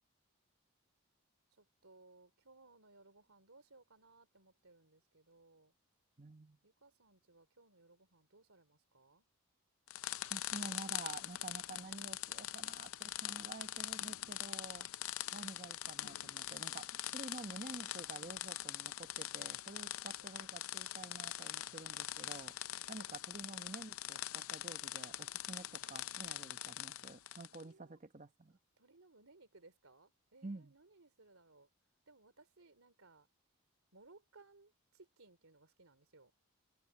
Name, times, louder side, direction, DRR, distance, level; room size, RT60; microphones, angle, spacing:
voice 1, 1.6-5.7 6.6-9.2 14.7-15.0 19.7-20.2 22.6-22.9 27.5-28.0 28.8-31.7 32.1-33.3 33.9-36.3, right 3 dB, 70° right, 3.1 m, -64 dB
voice 2, 6.2-6.6 10.3-14.9 15.3-22.6 22.9-28.6 30.4-30.7, right 2 dB, 35° right, 1.0 m, -50 dB
sound 1, 9.9-27.6, left 13 dB, 70° left, 0.6 m, -43 dB
head